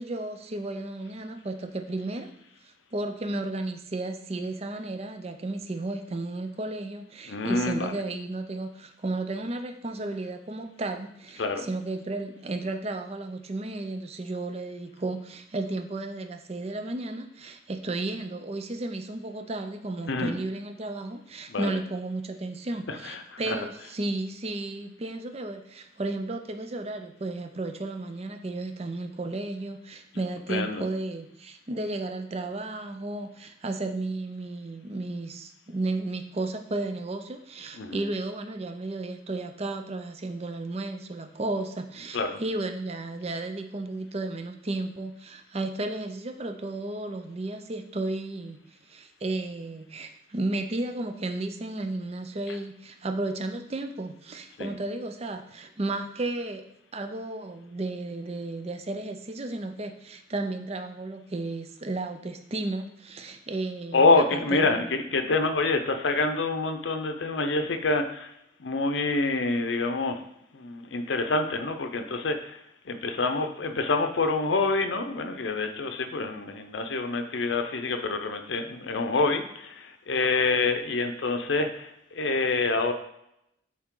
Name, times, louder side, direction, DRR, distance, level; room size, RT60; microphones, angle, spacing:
voice 1, 0.0-2.3 2.9-48.6 48.9-56.6 56.9-64.9, right 2 dB, 35° right, 7 dB, 0.5 m, -33 dB
voice 2, 7.3-7.9 11.4-11.7 20.1-20.4 21.5-21.8 22.9-23.7 30.5-30.8 37.7-38.1 42.1-42.4 52.5-52.6 54.6-54.7 63.9-68.3 68.6-70.2 70.5-72.6 72.9-82.9, left 3 dB, 70° left, 7 dB, 0.6 m, -27 dB
7.2 x 4.2 x 3.7 m, 0.78 s
head